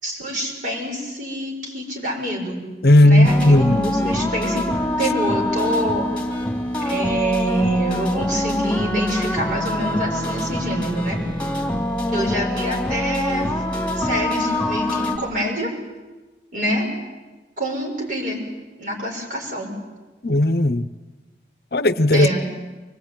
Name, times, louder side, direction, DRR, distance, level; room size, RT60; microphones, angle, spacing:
voice 1, 0.0-2.6 3.0-4.7 5.0-6.1 6.8-11.2 12.1-13.5 13.9-15.7 16.5-16.9 17.6-18.4 18.8-19.7 22.1-22.5, equal, 45° right, -1 dB, 6.6 m, -25 dB
voice 2, 2.8-3.9 20.2-20.8 21.7-22.3, left 1 dB, 60° left, 13 dB, 0.8 m, -15 dB
sound 1, 3.2-15.2, left 1 dB, 5° left, 2.9 m, -24 dB
24.5 x 20.5 x 9.4 m, 1.2 s
head